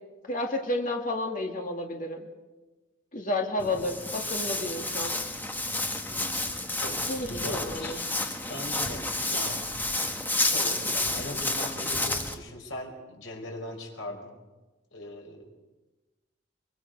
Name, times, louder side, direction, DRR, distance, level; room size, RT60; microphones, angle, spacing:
voice 1, 0.2-2.3 3.1-5.2 7.1-8.0, left 1 dB, 40° left, 2 dB, 2.1 m, -31 dB
Walk footsteps, 3.6-12.3, left 2 dB, 10° left, 1.5 m, -30 dB
voice 2, 6.8-8.0 8.5-9.8 10.5-14.3 14.9-15.5, left 1 dB, 90° left, 2 dB, 4.9 m, -40 dB
24.0 x 23.5 x 5.3 m, 1.2 s
head